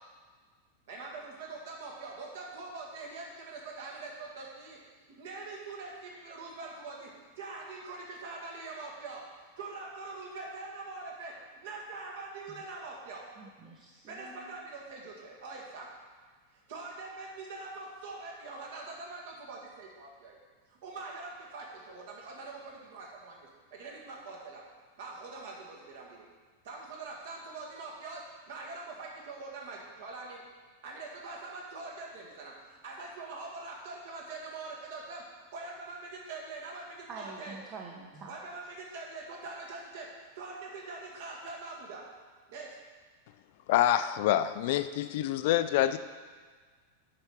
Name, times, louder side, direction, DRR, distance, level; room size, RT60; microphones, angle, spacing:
voice 1, 0.9-4.8 5.2-7.1 7.4-9.2 9.6-13.2 14.1-15.9 16.7-20.4 20.7-24.6 25.0-26.3 26.6-28.2 28.5-30.4 30.8-35.2 35.5-37.6 38.3-40.1 40.4-42.0 42.5-42.7, right 3 dB, 55° right, -2 dB, 1.9 m, -43 dB
voice 2, 13.4-14.5 37.1-38.3, right 4 dB, 30° right, 0 dB, 0.9 m, -47 dB
voice 3, 43.7-46.0, left 12 dB, 50° left, 12 dB, 0.4 m, -26 dB
8.9 x 5.6 x 4.7 m, 1.5 s
figure-of-eight pair, 90°, 0 cm